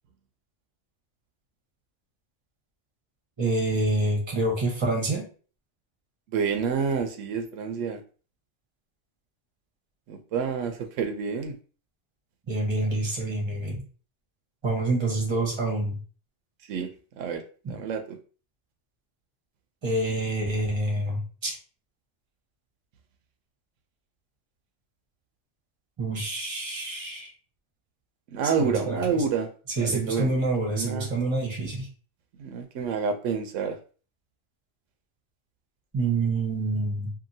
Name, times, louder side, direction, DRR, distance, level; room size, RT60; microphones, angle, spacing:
voice 1, 3.4-5.3 12.5-13.8 14.6-16.0 17.6-17.7 19.8-21.5 26.0-27.3 28.6-29.2 29.8-31.9 35.9-37.1, right 2 dB, 25° right, -1 dB, 0.9 m, -27 dB
voice 2, 6.3-8.0 10.1-11.6 16.7-16.9 17.2-17.4 17.7-18.0 28.3-29.5 29.8-30.3 30.7-31.1 32.4-33.8, right 6 dB, 90° right, 6 dB, 0.9 m, -28 dB
2.7 x 2.6 x 2.6 m, 0.39 s
omnidirectional pair, 1.3 m